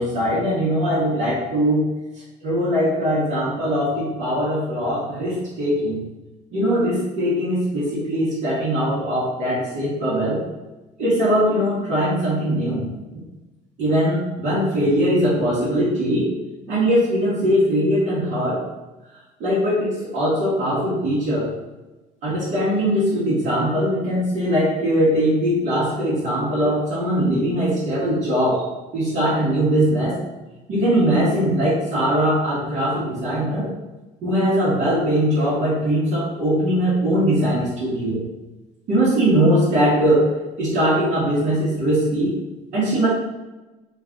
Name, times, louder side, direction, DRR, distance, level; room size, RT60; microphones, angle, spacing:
voice 1, 0.0-1.9 2.4-6.0 6.5-10.4 11.0-12.9 13.8-16.3 16.7-18.6 19.4-21.5 22.2-28.7 28.9-30.2 30.7-33.7 34.2-38.2 38.9-40.3 40.6-42.3 42.7-43.1, equal, 55° right, -10 dB, 1.3 m, -21 dB
3.2 x 2.4 x 3.6 m, 1.1 s
cardioid pair, 140°, 15 cm